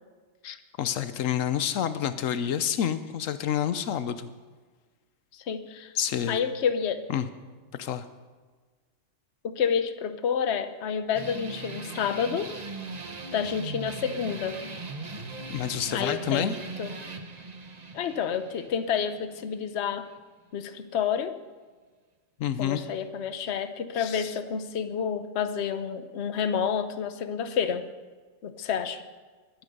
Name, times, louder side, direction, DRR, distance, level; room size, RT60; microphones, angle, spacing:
voice 1, 0.4-4.3 5.9-6.4 7.1-7.3 7.8-8.1 15.5-16.6 22.4-22.8 24.0-24.4, left 9 dB, 85° left, 12 dB, 1.1 m, -29 dB
voice 2, 5.5-5.9 6.3-7.0 9.4-12.5 13.3-14.6 15.9-16.5 16.8-17.0 17.9-20.1 20.5-21.3 22.6-27.9 28.4-29.0, left 7 dB, 60° left, 10 dB, 1.1 m, -29 dB
sound 1, 11.2-20.2, right 3 dB, 35° right, 1.1 m, -39 dB
22.0 x 9.2 x 5.3 m, 1.4 s
omnidirectional pair, 1.3 m